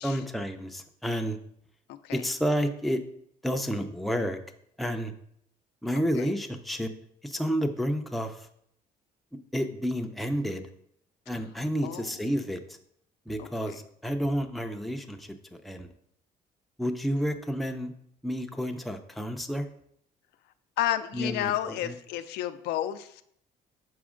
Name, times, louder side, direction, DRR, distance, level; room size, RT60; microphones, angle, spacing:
voice 1, 0.0-1.4 2.1-3.0 3.4-4.4 4.8-5.1 5.8-6.9 7.2-8.4 9.5-10.6 11.3-12.6 13.3-15.3 15.6-15.9 16.8-17.9 18.2-19.7 21.1-21.9, equal, ahead, 5 dB, 0.5 m, -30 dB
voice 2, 11.8-12.2 13.4-13.8 20.8-23.2, left 12 dB, 80° left, 10 dB, 0.4 m, -32 dB
6.1 x 4.2 x 3.7 m, 0.69 s
cardioid pair, 110°, 17 cm